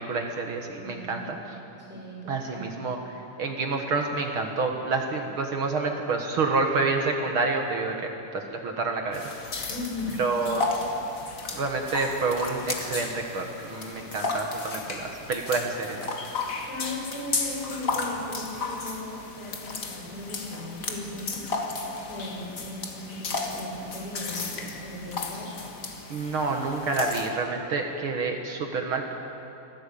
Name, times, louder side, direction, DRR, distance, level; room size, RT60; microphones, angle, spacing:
voice 1, 0.0-1.4 2.3-9.2 9.5-9.7 10.2-10.7 11.5-16.0 26.1-29.1, right 3 dB, 55° right, 3 dB, 1.4 m, -28 dB
voice 2, 0.8-1.2 1.8-2.6 9.7-10.2 16.6-21.4 21.9-25.5, left 2 dB, 5° right, -3 dB, 4.7 m, -37 dB
sound 1, 9.1-27.3, left 3 dB, 80° left, 0.7 m, -34 dB
25.0 x 16.0 x 8.6 m, 2.9 s
omnidirectional pair, 4.4 m